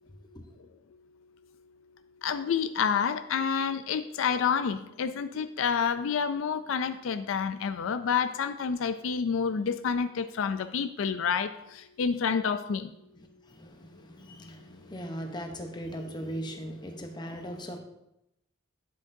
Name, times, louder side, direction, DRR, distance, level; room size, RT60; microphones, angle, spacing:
voice 1, 0.1-0.6 13.2-17.8, equal, 20° left, 0.9 m, -39 dB
voice 2, 2.2-12.9, left 6 dB, 75° left, 0.4 m, -29 dB
9.9 x 7.5 x 2.7 m
head